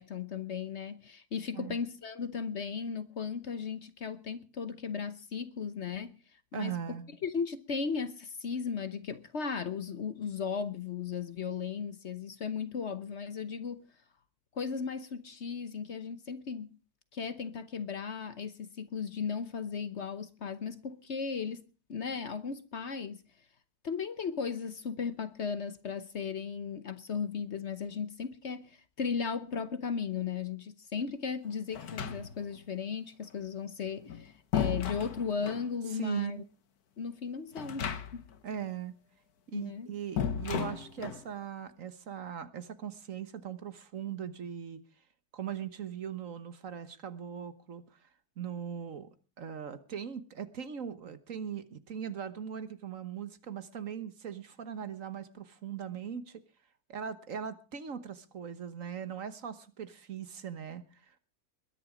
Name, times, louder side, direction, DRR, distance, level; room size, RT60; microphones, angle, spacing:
voice 1, 0.0-6.2 6.5-7.0 7.2-13.9 14.5-16.7 17.1-23.2 23.8-36.4 37.0-38.3 39.5-39.9, left 6 dB, 50° left, 1.1 m, -36 dB
voice 2, 6.5-7.0 35.9-36.4 38.4-38.9 39.5-44.8 45.3-47.8 48.4-49.1 49.4-56.4 56.9-61.0, right 8 dB, 60° right, 1.5 m, -40 dB
sound 1, 31.7-32.6 33.9-35.7 37.5-38.4 38.6-38.7 40.2-41.3, left 8 dB, 75° left, 1.7 m, -34 dB
21.0 x 10.5 x 5.0 m
omnidirectional pair, 1.6 m